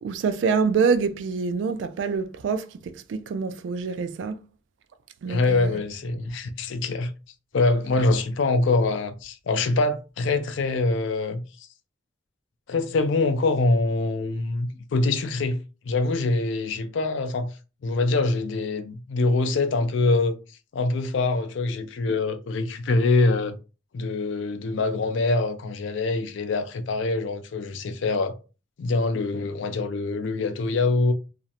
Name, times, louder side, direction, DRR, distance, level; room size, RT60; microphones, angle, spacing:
voice 1, 0.0-4.4 5.2-5.7, right 5 dB, 80° right, 0.3 m, -26 dB
voice 2, 5.3-7.1 7.5-11.7 12.7-15.6 15.8-17.6 17.8-20.4 20.7-23.6 23.9-28.3 28.8-31.1, left 3 dB, 85° left, 0.4 m, -24 dB
2.4 x 2.0 x 2.7 m
head